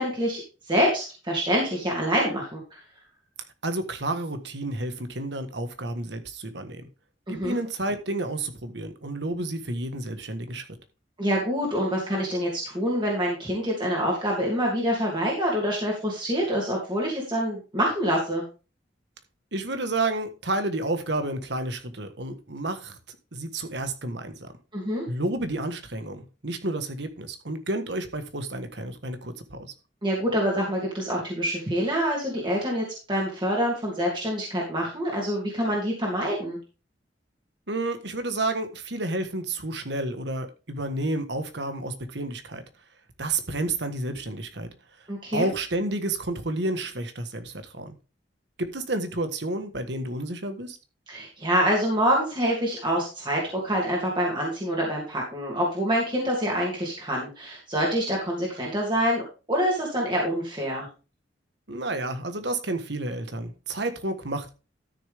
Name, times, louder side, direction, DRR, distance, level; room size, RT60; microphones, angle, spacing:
voice 1, 0.0-2.8 7.3-7.6 11.2-18.4 24.7-25.0 30.0-36.6 45.1-45.5 51.1-60.9, equal, 25° right, 2.8 m, -26 dB
voice 2, 3.6-6.8 7.3-10.6 19.5-24.5 25.1-29.7 37.7-42.6 43.2-44.7 45.3-47.9 48.6-50.8 61.7-64.5, right 2 dB, 70° right, 1.5 m, -30 dB
13.0 x 6.7 x 3.6 m
head